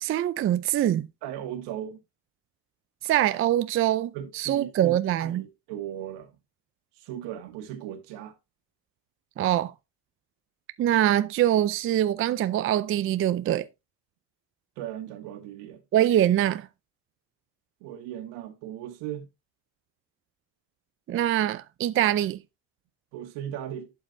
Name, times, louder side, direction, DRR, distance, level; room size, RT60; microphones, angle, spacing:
voice 1, 0.0-1.1 3.0-5.4 9.4-9.7 10.8-13.6 15.9-16.7 21.1-22.4, right 12 dB, 30° right, 0.4 m, -24 dB
voice 2, 1.2-2.0 4.1-6.3 7.0-8.3 14.8-15.8 17.8-19.3 23.1-23.9, right 11 dB, 80° right, 1.9 m, -37 dB
11.5 x 5.7 x 2.6 m
cardioid pair, 130°, 41 cm